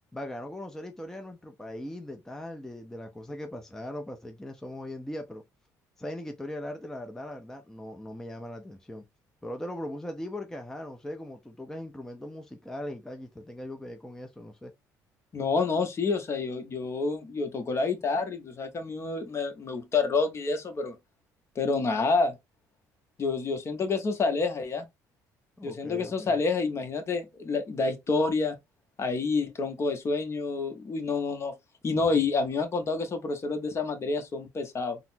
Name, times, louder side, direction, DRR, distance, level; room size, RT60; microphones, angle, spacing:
voice 1, 0.1-5.4 6.0-9.0 9.4-14.7 25.6-26.4 32.1-32.2, left 1 dB, 5° left, 0.5 m, -39 dB
voice 2, 15.3-21.0 21.6-22.4 23.2-24.8 25.6-28.6 29.0-31.5 31.8-35.0, left 4 dB, 40° left, 0.8 m, -28 dB
3.9 x 2.0 x 2.6 m
supercardioid pair, 85°, 7 cm